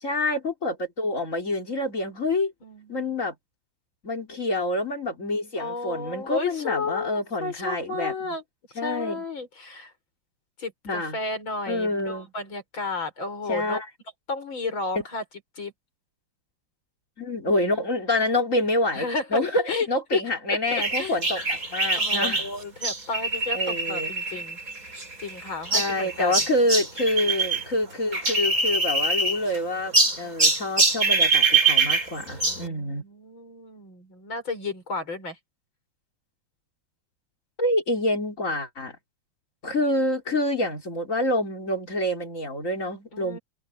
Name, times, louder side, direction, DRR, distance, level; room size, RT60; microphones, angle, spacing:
voice 1, 0.0-2.5 2.9-3.3 4.0-8.1 8.8-9.2 10.8-11.2 11.7-12.3 13.5-13.9 17.2-22.5 23.5-24.1 25.7-33.0 37.6-39.0 39.6-43.4, left 1 dB, 35° left, 3.9 m, -27 dB
voice 2, 2.6-3.3 5.6-8.4 8.8-9.9 10.6-13.8 14.3-15.2 15.6-15.7 18.9-19.4 19.7-19.9 20.1-20.2 20.5-21.2 21.9-26.3 32.4-35.4 43.1-43.4, left 3 dB, 60° left, 6.7 m, -33 dB
sound 1, 20.8-27.6 27.9-29.6 29.9-32.7, right 3 dB, 35° right, 6.2 m, -24 dB
omnidirectional pair, 2.4 m